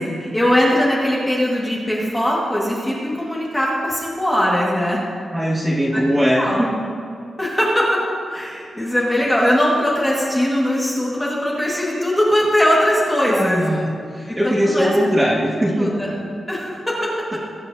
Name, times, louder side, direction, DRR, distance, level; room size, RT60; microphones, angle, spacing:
voice 1, 0.3-5.0 6.4-6.6 7.4-7.9 8.3-13.6 14.3-14.9 15.7-16.1 16.5-17.1, equal, 10° left, -5 dB, 1.7 m, -20 dB
voice 2, 5.3-6.7 13.3-13.9 14.1-15.9, equal, 15° right, -6 dB, 1.9 m, -20 dB
20.0 x 8.9 x 2.7 m, 2.3 s
wide cardioid pair, 155°, 0 cm